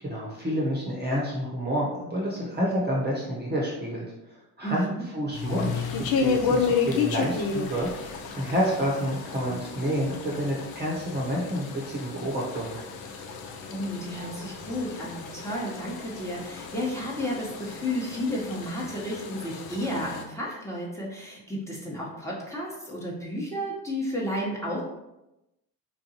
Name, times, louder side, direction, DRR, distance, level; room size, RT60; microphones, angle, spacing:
voice 1, 0.0-4.0 4.6-4.9 5.1-7.9 8.3-12.8, equal, 20° right, -4 dB, 1.0 m, -29 dB
voice 2, 4.6-5.0 13.7-24.8, equal, 5° left, -5 dB, 1.2 m, -32 dB
sound 1, 5.3-20.2, left 5 dB, 50° left, 0.6 m, -32 dB
3.7 x 2.6 x 2.9 m, 0.92 s
hypercardioid pair, 55°, 46 cm